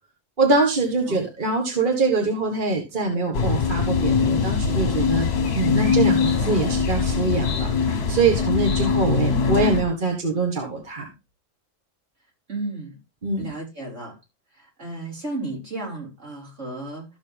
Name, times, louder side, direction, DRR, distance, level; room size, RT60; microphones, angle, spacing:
voice 1, 0.4-11.1 13.2-13.5, right 3 dB, 40° right, 2 dB, 1.8 m, -24 dB
sound 1, 3.3-9.8, left 5 dB, 55° left, 1.3 m, -22 dB
voice 2, 12.5-13.0 13.4-14.1 14.5-17.1, right 2 dB, 65° right, -3 dB, 5.3 m, -33 dB
14.0 x 6.8 x 3.4 m, 0.25 s
omnidirectional pair, 1.4 m